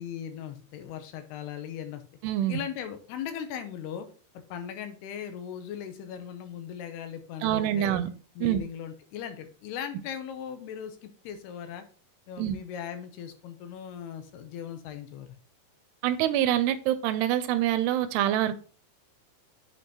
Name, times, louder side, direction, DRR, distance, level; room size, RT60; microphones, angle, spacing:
voice 1, 0.0-2.0 2.5-4.1 4.5-8.0 8.4-11.8 12.3-15.4, left 9 dB, 80° left, 2.7 m, -38 dB
voice 2, 2.2-2.6 7.4-8.1 8.4-8.6 12.4-12.6 16.0-18.6, right 12 dB, 85° right, 2.6 m, -25 dB
8.6 x 5.4 x 2.9 m
omnidirectional pair, 4.8 m